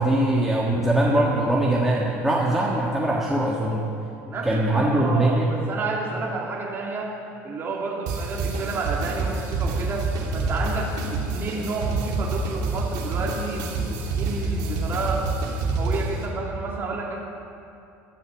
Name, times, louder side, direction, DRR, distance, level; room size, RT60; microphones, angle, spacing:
voice 1, 0.0-3.8 4.4-5.5, right 1 dB, 5° right, -4 dB, 1.6 m, -22 dB
voice 2, 4.3-7.2 7.4-10.9 11.3-15.2 15.7-17.2, right 3 dB, 30° right, -3 dB, 2.1 m, -30 dB
sound 1, 8.1-16.2, right 3 dB, 65° right, 3.0 m, -27 dB
13.0 x 12.0 x 7.2 m, 2.7 s
supercardioid pair, 115°, 7 cm